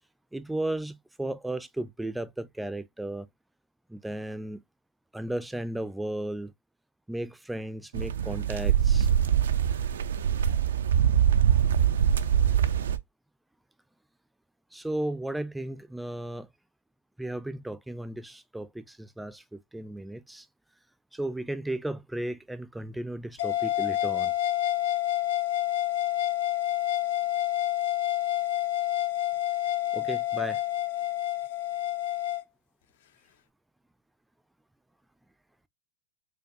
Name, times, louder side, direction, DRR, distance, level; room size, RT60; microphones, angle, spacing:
voice 1, 0.3-3.3 3.9-4.6 5.1-6.5 7.1-9.1 14.7-16.5 17.2-20.5 21.1-24.3 29.9-30.6, right 1 dB, 5° right, 0.4 m, -35 dB
sound 1, 7.9-13.0, right 9 dB, 90° right, 0.4 m, -23 dB
sound 2, 23.4-32.4, left 14 dB, 75° left, 0.6 m, -28 dB
4.7 x 2.3 x 2.6 m
hypercardioid pair, 120°, 0 cm